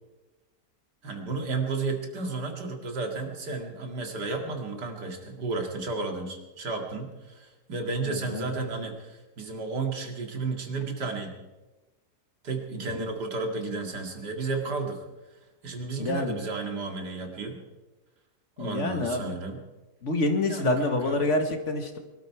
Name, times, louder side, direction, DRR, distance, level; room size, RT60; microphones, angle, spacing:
voice 1, 1.0-11.4 12.4-15.1 15.6-17.6 18.6-19.6 20.5-21.3, right 3 dB, 90° right, 3 dB, 2.7 m, -32 dB
voice 2, 8.0-8.5 12.8-12.9 16.0-16.4 18.6-19.3 20.0-22.0, left 2 dB, 50° left, 6 dB, 1.7 m, -27 dB
23.0 x 13.0 x 4.8 m, 1.2 s
omnidirectional pair, 1.7 m